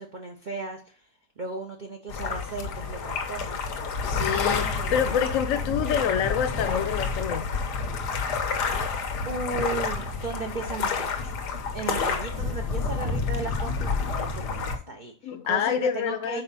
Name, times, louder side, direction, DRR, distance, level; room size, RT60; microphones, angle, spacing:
voice 1, 0.0-3.6 4.8-5.2 9.2-16.4, right 3 dB, 40° right, 0.7 m, -36 dB
sound 1, 2.1-14.8, left 4 dB, 80° left, 1.5 m, -29 dB
voice 2, 4.0-7.5 15.2-16.4, left 8 dB, 60° left, 1.0 m, -27 dB
5.4 x 4.7 x 5.5 m
omnidirectional pair, 1.7 m